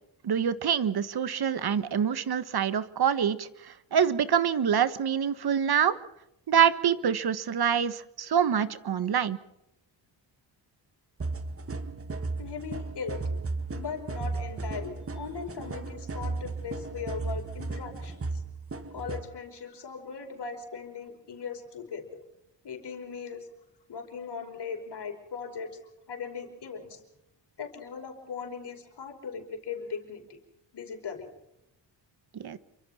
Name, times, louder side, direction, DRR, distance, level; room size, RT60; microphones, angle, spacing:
voice 1, 0.2-6.0 6.5-9.4 32.3-32.6, right 8 dB, 55° right, 14 dB, 1.5 m, -26 dB
sound 1, 11.2-19.3, right 3 dB, 30° right, 1.9 m, -35 dB
voice 2, 12.4-13.3 13.7-18.4 18.9-22.2 22.6-23.5 23.9-25.7 26.1-27.0 27.6-30.4 30.7-31.3, left 5 dB, 60° left, 4 dB, 5.4 m, -39 dB
28.0 x 24.5 x 4.4 m, 0.84 s
cardioid pair, 100°, 45 cm